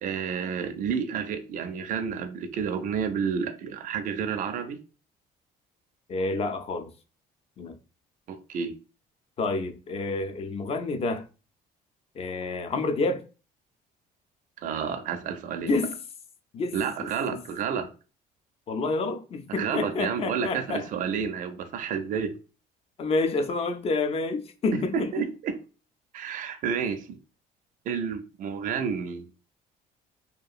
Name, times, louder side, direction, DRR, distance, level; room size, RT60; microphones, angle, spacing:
voice 1, 0.0-4.8 8.3-8.7 14.6-15.8 16.7-17.9 19.5-22.3 24.9-25.6 26.1-27.2 27.9-29.3, right 6 dB, 50° right, 0.4 m, -30 dB
voice 2, 6.1-6.9 7.6-7.8 9.4-11.3 12.1-13.2 15.6-16.0 16.5-17.4 18.7-20.9 23.0-25.3, left 3 dB, 35° left, 0.4 m, -29 dB
2.8 x 2.4 x 2.4 m
cardioid pair, 110°, 17 cm